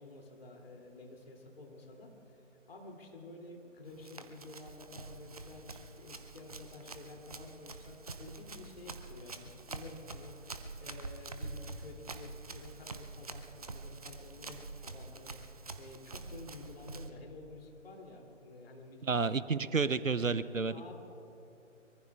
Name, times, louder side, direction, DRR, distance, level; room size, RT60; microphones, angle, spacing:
voice 1, 0.0-2.1 2.7-15.5 15.8-19.2 20.7-20.9, left 2 dB, 50° left, 1 dB, 2.8 m, -51 dB
Run, 3.9-17.1, right 3 dB, 30° right, 0.6 m, -46 dB
voice 2, 19.0-20.9, right 4 dB, 90° right, 15 dB, 0.8 m, -31 dB
24.5 x 23.0 x 2.4 m, 2.8 s
figure-of-eight pair, 145°, 38 cm